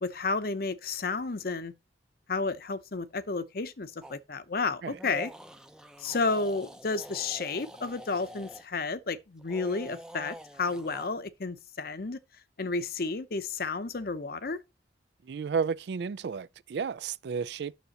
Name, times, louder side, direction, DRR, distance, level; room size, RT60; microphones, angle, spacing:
voice 1, 0.0-1.7 2.3-5.3 6.0-12.2 12.6-14.6, left 3 dB, 55° left, 0.7 m, -32 dB
sound 1, 4.0-4.2 4.9-8.7 9.4-11.1, right 1 dB, 5° right, 0.5 m, -45 dB
voice 2, 15.2-17.7, right 6 dB, 65° right, 0.3 m, -32 dB
9.2 x 6.7 x 2.9 m
head